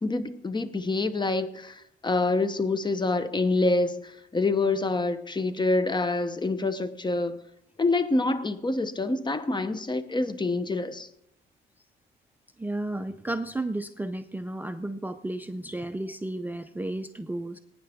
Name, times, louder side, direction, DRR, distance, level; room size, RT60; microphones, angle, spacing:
voice 1, 0.0-7.4 7.8-11.1, left 2 dB, 20° left, 12 dB, 1.0 m, -26 dB
voice 2, 12.6-17.6, right 1 dB, 10° right, 9 dB, 0.5 m, -33 dB
18.0 x 9.4 x 3.5 m, 0.76 s
cardioid pair, 90°, 20 cm